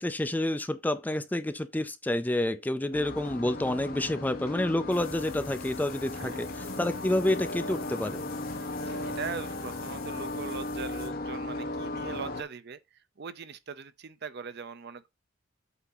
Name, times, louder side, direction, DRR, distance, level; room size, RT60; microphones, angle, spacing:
voice 1, 0.0-8.2, left 1 dB, 10° left, 0.4 m, -29 dB
sound 1, 2.9-12.4, left 2 dB, 45° left, 1.1 m, -36 dB
sound 2, 4.9-11.1, left 8 dB, 70° left, 1.7 m, -49 dB
voice 2, 8.8-15.1, right 5 dB, 55° right, 0.6 m, -41 dB
8.2 x 2.8 x 5.5 m
head